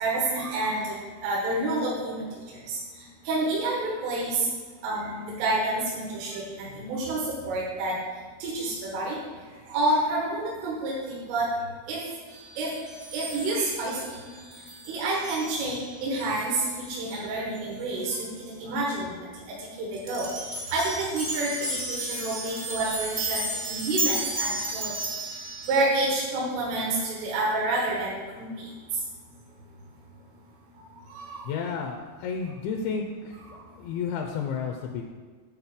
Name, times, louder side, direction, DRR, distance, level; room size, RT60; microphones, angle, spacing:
voice 1, 0.0-2.8 3.3-4.5 4.8-8.0 8.4-9.2 9.7-11.5 11.9-12.0 12.6-12.7 13.1-14.2 14.9-19.1 19.5-20.3 20.7-24.9 25.7-28.7 31.1-31.5, right 2 dB, 80° right, -4 dB, 3.9 m, -29 dB
sound 1, 12.3-17.2 17.5-17.6 18.1-18.3 19.9-25.8, right 1 dB, 65° right, 0.7 m, -34 dB
voice 2, 31.5-35.0, left 6 dB, 80° left, 3 dB, 2.8 m, -32 dB
10.0 x 4.3 x 7.2 m, 1.5 s
omnidirectional pair, 5.6 m